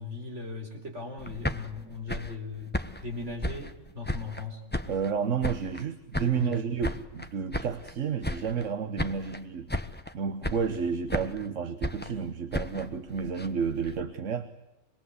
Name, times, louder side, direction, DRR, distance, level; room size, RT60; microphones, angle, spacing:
voice 1, 0.0-4.6 6.3-6.8, left 3 dB, 70° right, 2 dB, 4.8 m, -38 dB
sound 1, 1.2-4.4 4.7-5.9 6.1-7.9 8.2-8.7 9.0-9.4 9.7-10.1 10.4-11.5 11.8-14.0, left 1 dB, 10° left, 1.0 m, -35 dB
voice 2, 4.9-9.7 10.1-14.5, right 6 dB, 85° right, 10 dB, 1.5 m, -31 dB
26.0 x 22.0 x 8.1 m, 0.99 s
omnidirectional pair, 1.3 m